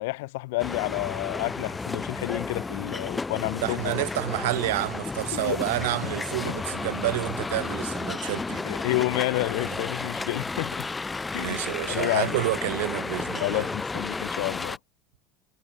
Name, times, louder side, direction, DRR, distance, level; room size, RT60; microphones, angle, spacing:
voice 1, 0.0-4.0 5.3-5.6 6.4-6.5 8.6-10.8 11.3-11.6 11.9-12.4 13.4-14.8, left 22 dB, 80° left, 1.6 m, -29 dB
sound 1, 0.6-14.8, left 3 dB, 15° left, 2.0 m, -32 dB
voice 2, 3.6-8.7 9.7-9.8 11.4-13.7, right 18 dB, 85° right, 0.5 m, -29 dB
supercardioid pair, 95°, 0 cm